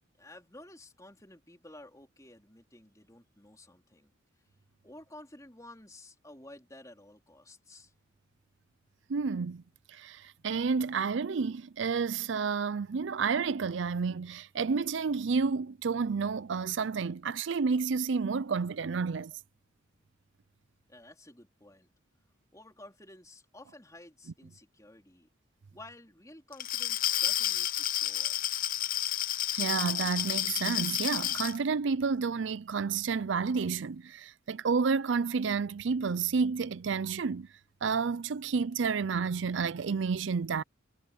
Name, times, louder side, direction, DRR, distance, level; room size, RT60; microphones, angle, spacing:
voice 1, 0.2-4.2 4.8-7.9 20.9-21.9 22.5-25.3 25.7-28.6, left 1 dB, 15° left, 4.0 m, -52 dB
voice 2, 9.1-9.6 9.9-19.3 29.5-37.5 37.8-40.6, right 5 dB, 65° right, 0.5 m, -30 dB
Glass, 26.5-31.6, left 12 dB, 45° left, 0.8 m, -31 dB
head